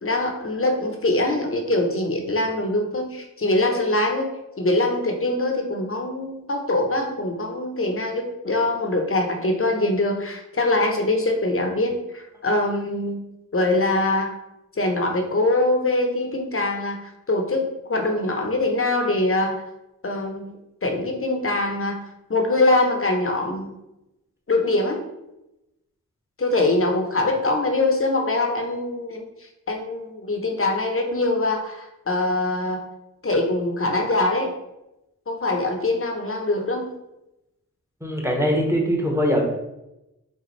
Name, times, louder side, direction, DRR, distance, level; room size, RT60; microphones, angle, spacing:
voice 1, 0.0-13.2 13.5-14.3 14.8-19.6 20.0-20.5 20.8-22.0 22.3-23.7 24.5-25.0 26.4-29.3 29.7-32.8 33.2-34.5 35.3-36.9, left 2 dB, 40° left, 3 dB, 0.8 m, -23 dB
voice 2, 38.0-39.4, equal, 10° right, -1 dB, 1.0 m, -22 dB
5.2 x 2.3 x 3.2 m, 0.92 s
cardioid pair, 45°, 33 cm